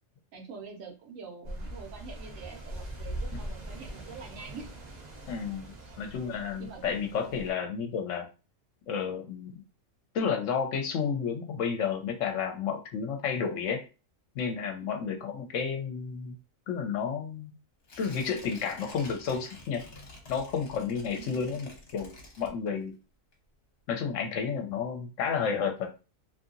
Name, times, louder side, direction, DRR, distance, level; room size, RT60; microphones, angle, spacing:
voice 1, 0.3-4.7 5.8-6.0 6.6-6.8 7.2-7.5 14.8-15.2 21.1-21.5, right 5 dB, 75° right, 2 dB, 1.1 m, -45 dB
sound 1, 1.4-7.5, right 1 dB, 45° right, 0.6 m, -41 dB
voice 2, 5.3-8.3 8.9-9.6 10.1-13.8 14.4-16.3 16.7-17.5 18.0-19.8 20.3-22.9 23.9-25.9, left 6 dB, 70° left, 4 dB, 0.9 m, -31 dB
Tearing, 17.8-23.0 23.3-23.4, left 2 dB, 55° left, 1.0 m, -49 dB
2.7 x 2.7 x 2.5 m, 0.32 s
omnidirectional pair, 1.4 m